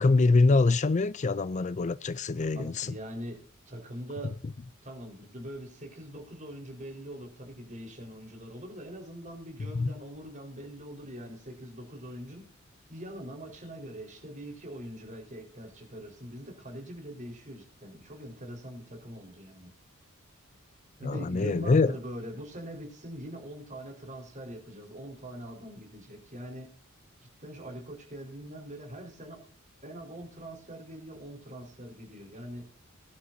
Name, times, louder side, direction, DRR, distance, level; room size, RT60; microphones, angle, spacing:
voice 1, 0.0-2.9 9.7-9.9 21.0-21.9, left 3 dB, 35° left, 0.4 m, -24 dB
voice 2, 2.5-3.4 3.7-4.3 4.8-12.5 12.9-19.7 21.0-26.7 27.4-29.4 29.8-32.7, right 1 dB, 35° right, 4.5 m, -43 dB
20.5 x 11.5 x 2.7 m
head